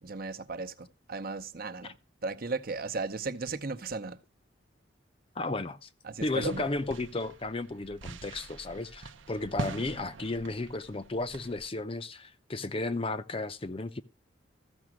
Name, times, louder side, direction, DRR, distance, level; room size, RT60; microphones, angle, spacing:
voice 1, 0.0-2.0 2.2-4.2 6.0-6.7, right 3 dB, 50° right, 0.8 m, -36 dB
voice 2, 5.4-5.9 6.2-14.0, left 2 dB, 30° left, 0.6 m, -34 dB
sound 1, 6.2-11.7, right 3 dB, 85° right, 0.8 m, -43 dB
14.0 x 6.0 x 6.0 m
head